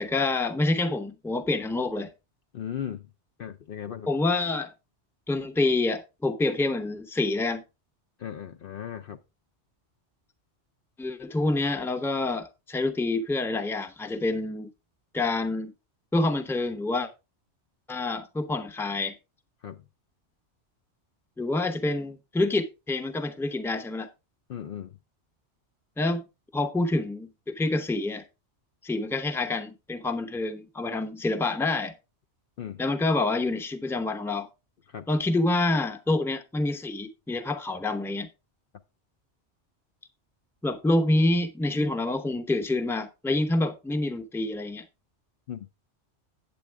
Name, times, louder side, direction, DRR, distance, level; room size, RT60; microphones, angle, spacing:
voice 1, 0.0-2.1 4.1-4.7 5.3-7.6 11.0-14.7 15.1-15.7 16.1-17.1 17.9-19.1 21.4-24.1 26.0-26.2 26.5-28.2 28.8-31.9 32.8-34.5 35.1-38.3 40.6-44.8, left 2 dB, ahead, 0.7 m, -27 dB
voice 2, 2.5-3.1 3.4-4.1 8.2-9.2 19.6-19.8 24.5-25.0 32.6-32.8 34.9-35.1 45.5-45.7, left 9 dB, 60° left, 0.7 m, -37 dB
8.6 x 8.5 x 3.4 m
omnidirectional pair, 1.2 m